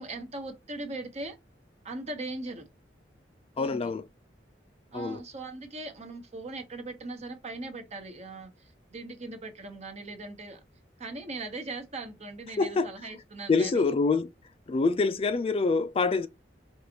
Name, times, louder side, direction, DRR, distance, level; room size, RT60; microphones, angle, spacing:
voice 1, 0.0-1.4 1.8-2.7 3.6-3.9 4.9-10.6 11.0-13.8, right 2 dB, 40° right, 1.0 m, -39 dB
voice 2, 3.6-4.0 4.9-5.2 12.6-12.9 13.5-14.3 14.7-16.3, left 4 dB, 30° left, 0.3 m, -25 dB
4.8 x 2.5 x 2.9 m
head